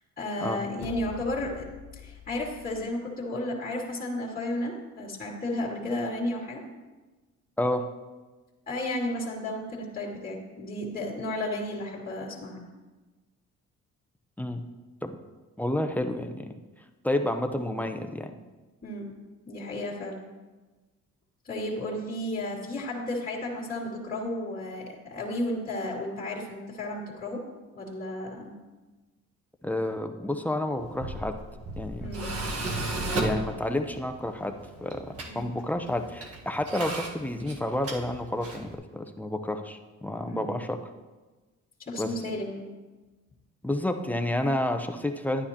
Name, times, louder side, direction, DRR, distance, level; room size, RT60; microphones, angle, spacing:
voice 1, 0.2-1.7 2.0-6.6 8.7-12.6 18.8-19.1 19.4-20.2 21.4-27.4 27.7-28.5 32.0-32.3 35.2-35.4 40.2-40.5 41.8-42.6, left 1 dB, 30° left, -6 dB, 2.3 m, -33 dB
sound 1, 0.8-2.9, left 9 dB, 70° left, 0.7 m, -44 dB
voice 2, 7.6-7.9 14.4-14.6 15.0-15.1 15.6-16.5 17.0-18.3 29.6-31.3 31.8-32.1 33.1-34.5 34.8-40.8 42.0-42.1 43.6-45.5, left 1 dB, 5° left, 6 dB, 0.7 m, -30 dB
Tools, 30.8-38.7, right 2 dB, 50° right, 1.6 m, -35 dB
11.5 x 9.6 x 2.9 m, 1.2 s
cardioid pair, 90°, 30 cm